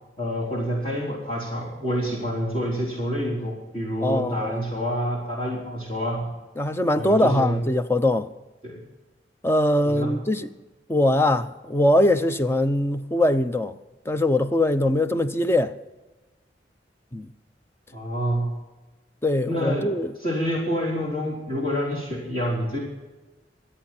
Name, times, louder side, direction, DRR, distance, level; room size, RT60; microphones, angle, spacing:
voice 1, 0.2-6.3 6.9-7.6 8.6-8.8 9.8-10.1 17.9-18.5 19.5-19.9 20.2-22.8, equal, 35° left, 3.8 m, -27 dB
voice 2, 4.0-4.6 6.6-8.3 9.4-10.5 10.9-13.7 14.1-15.7 17.1-17.3 19.2-20.1, left 1 dB, 15° left, 0.7 m, -22 dB
26.0 x 8.8 x 4.4 m
head